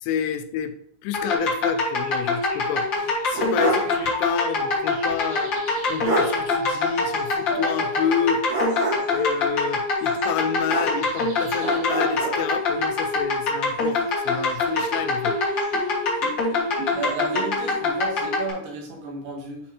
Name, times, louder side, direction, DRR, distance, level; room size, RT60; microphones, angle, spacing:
voice 1, 0.0-0.7 1.0-2.9 3.3-5.5 5.8-8.4 9.1-14.0 14.3-15.4, left 8 dB, 85° left, 9 dB, 2.7 m, -29 dB
sound 1, 1.1-18.5, left 3 dB, 60° left, 1.2 m, -24 dB
sound 2, 1.3-18.1, equal, 60° right, 3.0 m, -39 dB
sound 3, 2.9-4.0 4.3-4.4 5.7-5.8 6.0-6.4 8.5-9.2 10.7-11.3 11.6-12.4, right 2 dB, 45° right, 2.1 m, -26 dB
voice 2, 16.9-19.6, right 4 dB, 80° right, -1 dB, 3.4 m, -33 dB
8.7 x 4.2 x 2.8 m, 0.66 s
omnidirectional pair, 4.8 m